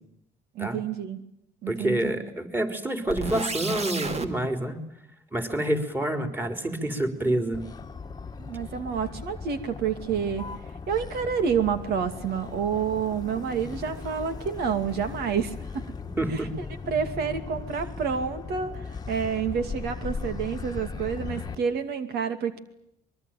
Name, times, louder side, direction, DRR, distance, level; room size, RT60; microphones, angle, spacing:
voice 1, 0.5-1.2 1.6-2.2 8.4-10.5 10.9-15.8 16.3-16.5 16.9-22.6, right 7 dB, 75° right, 9 dB, 2.5 m, -29 dB
voice 2, 1.7-4.8 5.3-7.6 16.2-16.5, right 1 dB, 10° right, 7 dB, 4.2 m, -27 dB
sound 1, 3.1-4.3, right 3 dB, 40° right, 3.0 m, -31 dB
Motor vehicle (road), 7.5-21.6, left 5 dB, 25° left, 1.5 m, -38 dB
24.0 x 22.5 x 9.2 m, 0.79 s
cardioid pair, 110°, 17 cm